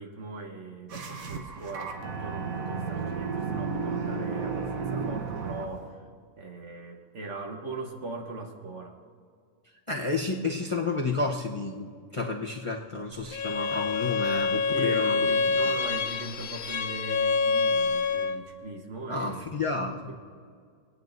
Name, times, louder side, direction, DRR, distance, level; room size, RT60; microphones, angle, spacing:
voice 1, 0.0-6.1 6.4-8.9 14.7-19.4 20.1-20.2, right 3 dB, 60° right, 1 dB, 1.5 m, -40 dB
sound 1, 0.9-5.9, right 5 dB, 80° right, 1.4 m, -33 dB
voice 2, 9.9-15.3 19.1-20.0, left 3 dB, 30° left, -1 dB, 0.7 m, -30 dB
Bowed string instrument, 13.3-18.5, left 4 dB, 70° left, 0.5 m, -27 dB
25.5 x 9.3 x 2.6 m, 2.1 s
omnidirectional pair, 1.5 m